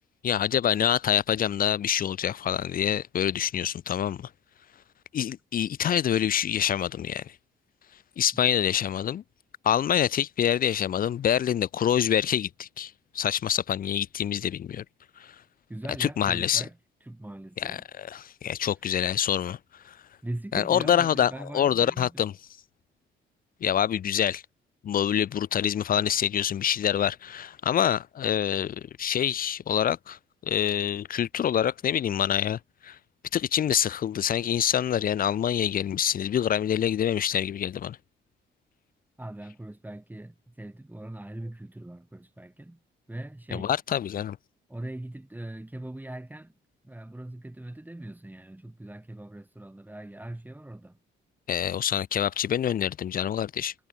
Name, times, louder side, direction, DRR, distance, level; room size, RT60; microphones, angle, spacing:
voice 1, 0.2-4.3 5.1-7.3 8.2-9.2 9.6-14.8 15.2-15.3 16.0-16.6 17.6-19.6 19.9-20.0 20.5-22.3 23.6-24.4 24.8-33.0 33.3-38.0 43.5-44.4 51.5-53.7, left 9 dB, 45° left, 0.5 m, -26 dB
voice 2, 15.7-17.9 20.2-22.2 39.2-42.8 43.1-43.7 44.7-46.5 46.8-51.0, right 1 dB, 10° right, 2.5 m, -40 dB
cardioid pair, 90°, 20 cm